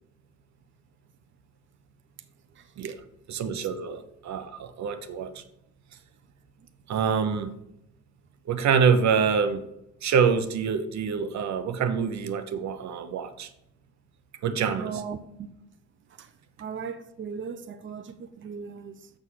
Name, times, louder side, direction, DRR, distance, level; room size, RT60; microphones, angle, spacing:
voice 1, 2.5-3.0 14.7-15.5 16.1-16.3 16.6-19.1, right 6 dB, 40° right, 0.8 m, -38 dB
voice 2, 3.3-5.4 6.9-7.5 8.5-9.6 10.0-13.5 14.4-15.0, right 6 dB, 65° right, 0.9 m, -26 dB
6.3 x 6.3 x 7.5 m
cardioid pair, 90°, 30 cm